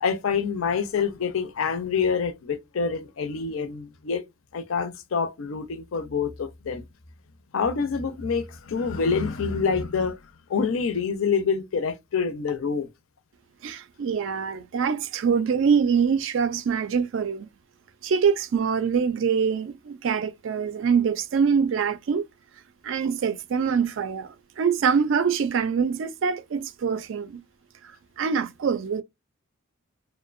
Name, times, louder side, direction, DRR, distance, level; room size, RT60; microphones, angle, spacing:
voice 1, 0.0-4.2 4.5-6.8 7.5-10.2 10.5-12.9, left 5 dB, 75° left, 0.5 m, -26 dB
voice 2, 13.6-17.5 18.0-22.2 22.8-27.4 28.2-29.0, right 6 dB, 65° right, 0.3 m, -24 dB
2.6 x 2.1 x 2.4 m
head